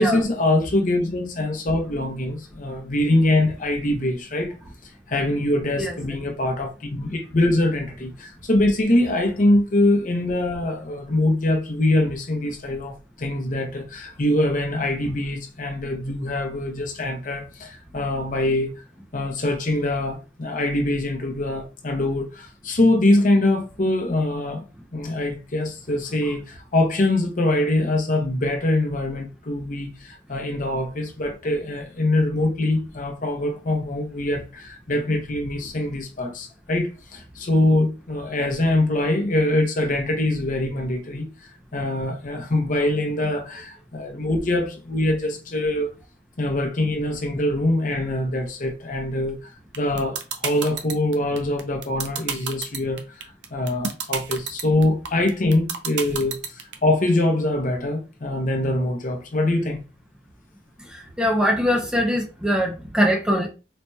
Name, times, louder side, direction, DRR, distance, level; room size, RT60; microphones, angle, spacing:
voice 1, 0.0-4.5 5.1-18.7 19.1-24.6 24.9-41.3 41.7-45.9 46.4-49.4 49.7-53.2 53.5-59.8, left 1 dB, 45° left, 0.7 m, -23 dB
sound 1, 49.7-56.7, right 7 dB, 65° right, 0.6 m, -28 dB
voice 2, 60.9-63.5, equal, 5° right, 0.6 m, -22 dB
4.1 x 2.8 x 2.2 m
head